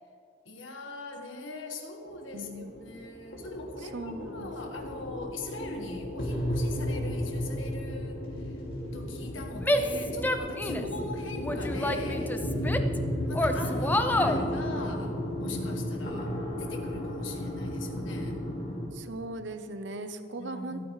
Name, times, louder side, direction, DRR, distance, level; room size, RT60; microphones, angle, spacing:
voice 1, 0.4-8.6 8.9-12.8 13.3-18.4 20.3-20.9, left 2 dB, 75° left, 3 dB, 1.6 m, -41 dB
sound 1, 2.0-18.9, equal, 50° left, 2.4 m, -33 dB
voice 2, 2.3-2.7 3.9-4.5 10.7-10.9 18.9-20.8, right 2 dB, 65° right, 9 dB, 0.8 m, -39 dB
Female speech woman speaking / Yell, 9.6-11.0 11.4-13.0 13.3-14.4, left 1 dB, 10° left, 0.4 m, -28 dB
24.5 x 9.3 x 3.2 m, 2.5 s
head